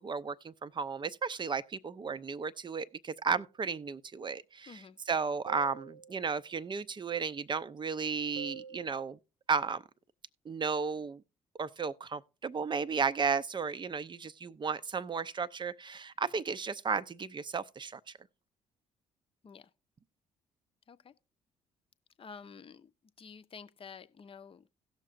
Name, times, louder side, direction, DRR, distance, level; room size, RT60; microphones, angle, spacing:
voice 1, 0.0-9.2 9.5-9.8 10.5-11.2 11.6-18.0, right 5 dB, 25° right, 0.6 m, -34 dB
voice 2, 4.7-5.0 19.4-19.7 20.9-21.1 22.2-22.9 23.2-24.7, left 6 dB, 30° left, 0.7 m, -50 dB
sound 1, 5.5-6.5 8.4-9.1, right 7 dB, 75° right, 0.4 m, -47 dB
17.5 x 6.5 x 2.5 m
figure-of-eight pair, 45°, 17 cm